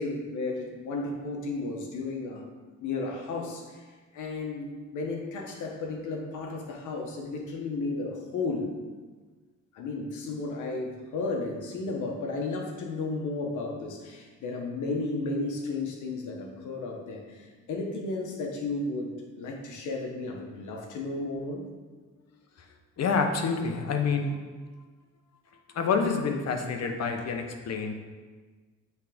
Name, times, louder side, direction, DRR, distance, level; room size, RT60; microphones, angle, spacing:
voice 1, 0.0-2.4 2.8-3.9 4.1-4.7 4.9-8.7 9.7-21.7, left 3 dB, 80° left, 1 dB, 1.3 m, -33 dB
voice 2, 23.0-24.4 25.7-27.9, left 5 dB, 55° left, 4 dB, 1.0 m, -27 dB
8.3 x 3.6 x 5.1 m, 1.4 s
cardioid pair, 90°, 30 cm